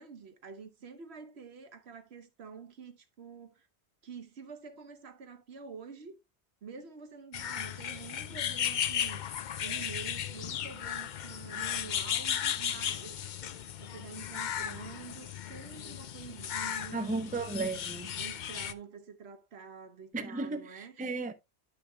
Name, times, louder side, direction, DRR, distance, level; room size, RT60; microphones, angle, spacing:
voice 1, 0.0-3.7 4.0-6.2 6.6-9.2 9.6-13.2 13.8-17.1 18.2-21.3, right 6 dB, 75° right, 1.2 m, -47 dB
sound 1, 7.3-18.7, left 9 dB, 55° left, 0.6 m, -35 dB
voice 2, 16.9-18.1 20.1-21.3, right 3 dB, 10° right, 0.5 m, -34 dB
11.5 x 5.7 x 2.2 m
omnidirectional pair, 1.1 m